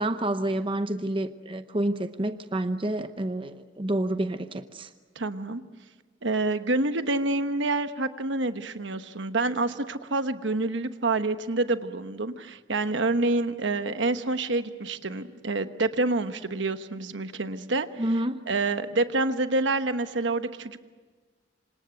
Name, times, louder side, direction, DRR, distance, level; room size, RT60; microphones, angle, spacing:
voice 1, 0.0-4.9 18.0-18.4, right 1 dB, 25° right, 9 dB, 0.8 m, -28 dB
voice 2, 5.1-5.6 6.2-17.9 18.5-20.8, right 2 dB, 70° right, 9 dB, 1.2 m, -27 dB
27.0 x 26.5 x 7.9 m, 1.4 s
head